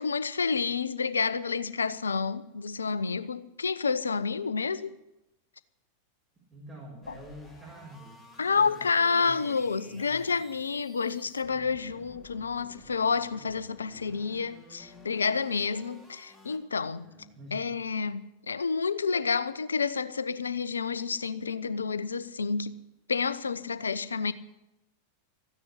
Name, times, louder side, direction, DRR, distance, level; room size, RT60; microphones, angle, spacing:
voice 1, 0.0-4.9 8.4-17.1 17.5-22.8 23.1-24.3, left 5 dB, 75° left, 0.7 m, -29 dB
voice 2, 6.5-10.3 16.8-17.7, right 1 dB, 20° right, 4.8 m, -48 dB
sound 1, 7.0-16.6, left 1 dB, 5° left, 2.9 m, -53 dB
14.5 x 9.7 x 9.9 m
figure-of-eight pair, 90°, 0 cm